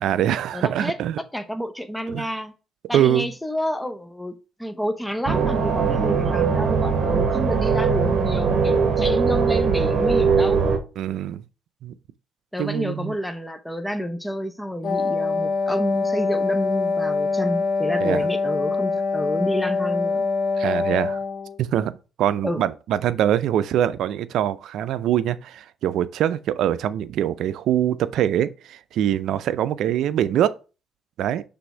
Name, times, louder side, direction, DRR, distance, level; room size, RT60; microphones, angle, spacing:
voice 1, 0.0-1.2 2.1-2.3 2.9-3.3 11.0-11.4 11.8-11.9 12.6-13.2 18.0-18.2 20.6-21.2 21.6-21.9 22.2-30.6 31.2-31.4, right 11 dB, 80° right, 0.4 m, -23 dB
voice 2, 0.5-1.0 1.3-2.5 2.9-4.3 4.6-10.7 12.5-20.3 22.4-22.6, equal, 5° left, 0.7 m, -29 dB
sound 1, 5.2-10.8, right 5 dB, 60° right, 1.1 m, -21 dB
Wind instrument woodwind instrument, 14.8-21.6, left 4 dB, 70° left, 1.1 m, -24 dB
6.1 x 3.4 x 4.6 m
cardioid pair, 90°, 0 cm